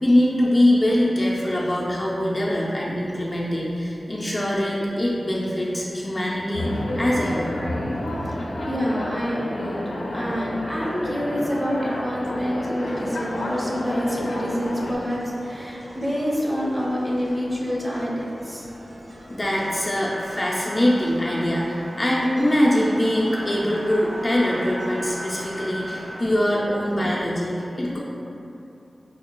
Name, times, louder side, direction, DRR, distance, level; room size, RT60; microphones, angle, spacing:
voice 1, 0.0-7.6 19.3-28.0, left 1 dB, 30° left, -6 dB, 0.5 m, -23 dB
sound 1, 6.5-14.9, left 1 dB, 90° left, 0.4 m, -30 dB
voice 2, 8.6-9.8 10.1-18.7, equal, 25° right, -5 dB, 0.8 m, -27 dB
sound 2, 12.8-19.7, equal, 85° right, 0.9 m, -43 dB
sound 3, 19.5-26.3, right 1 dB, 70° right, 0.3 m, -37 dB
5.3 x 2.3 x 2.2 m, 2.9 s
wide cardioid pair, 60°, 0 cm